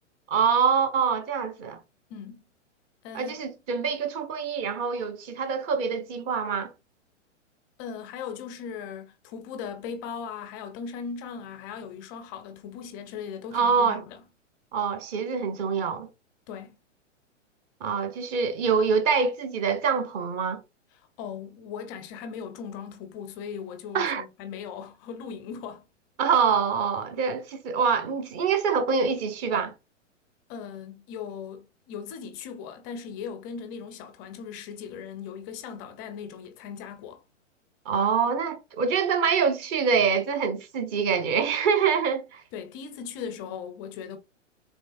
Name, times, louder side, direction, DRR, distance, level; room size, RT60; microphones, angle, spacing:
voice 1, 0.3-1.8 3.1-6.7 13.5-14.0 14.7-16.1 17.8-20.6 23.9-24.2 26.2-29.7 37.8-42.4, right 6 dB, 25° right, 0.9 m, -25 dB
voice 2, 2.1-2.4 3.0-3.4 7.8-14.2 16.5-16.8 21.2-25.8 30.5-37.2 42.5-44.2, left 7 dB, 15° left, 0.4 m, -38 dB
5.3 x 3.6 x 2.4 m
figure-of-eight pair, 110°, 38 cm